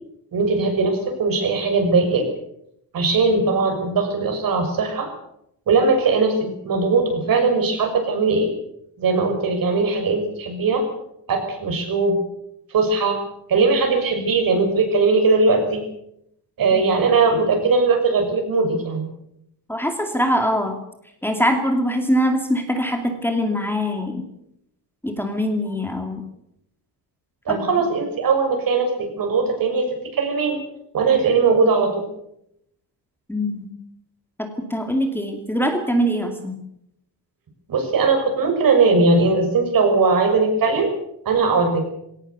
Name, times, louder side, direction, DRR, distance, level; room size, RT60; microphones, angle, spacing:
voice 1, 0.3-2.2 2.9-5.1 5.7-8.5 9.0-10.8 11.3-12.1 12.7-13.2 13.5-15.8 16.6-19.1 27.5-29.9 30.1-30.6 30.9-32.1 37.7-40.9 41.2-41.9, right 4 dB, 60° right, 5 dB, 6.7 m, -19 dB
voice 2, 19.7-20.8 21.2-24.3 25.0-26.2 27.5-27.8 33.3-33.7 34.4-36.6, equal, 5° left, 4 dB, 2.5 m, -23 dB
21.5 x 18.0 x 8.1 m, 0.78 s
wide cardioid pair, 160°, 39 cm